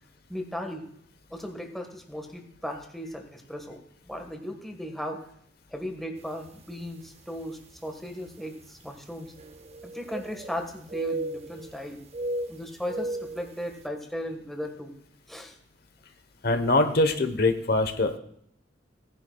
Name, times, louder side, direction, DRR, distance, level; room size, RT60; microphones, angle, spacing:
voice 1, 0.3-0.9 1.3-5.2 5.7-9.3 9.8-12.0 12.5-14.9 15.3-15.6, equal, ahead, 3 dB, 1.4 m, -37 dB
sound 1, 6.5-6.6 7.4-7.5 9.4-10.6 10.9-11.7 12.1-13.5, right 2 dB, 35° right, 0.6 m, -34 dB
voice 2, 16.4-18.2, left 2 dB, 60° left, 7 dB, 1.0 m, -23 dB
18.0 x 10.5 x 2.3 m, 0.68 s
head